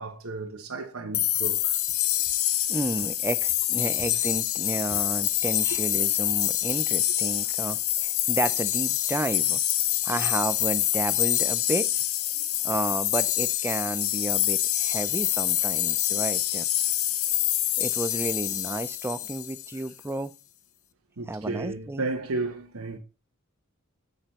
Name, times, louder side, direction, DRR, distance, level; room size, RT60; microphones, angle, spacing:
voice 1, 0.0-1.7 4.9-5.0 5.4-5.5 6.0-6.1 10.1-10.3 12.3-12.4 21.2-23.0, right 3 dB, 75° right, 1.2 m, -34 dB
sound 1, 1.1-19.8, left 13 dB, 70° left, 0.7 m, -26 dB
voice 2, 2.7-9.6 10.0-11.9 12.6-16.6 17.8-20.3 21.3-22.0, right 2 dB, 10° right, 0.4 m, -31 dB
8.0 x 6.7 x 4.2 m
head